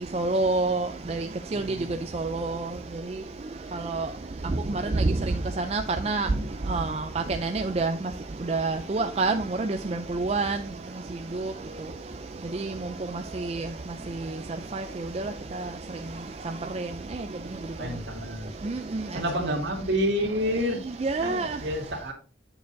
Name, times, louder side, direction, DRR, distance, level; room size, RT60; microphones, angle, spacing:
voice 1, 0.1-1.2 1.5-1.6 2.1-2.5 3.9-4.1 5.7-6.3 6.7-6.9 7.4-7.9 8.5-9.3 10.1-10.6 14.7-14.8 18.7-18.8 21.0-21.5, right 3 dB, 35° right, 6 dB, 0.4 m, -26 dB
voice 2, 1.5-2.0 13.9-14.2 17.8-18.5 19.1-20.8 21.2-22.1, equal, 70° right, 0 dB, 2.2 m, -29 dB
8.5 x 6.9 x 2.6 m, 0.35 s
head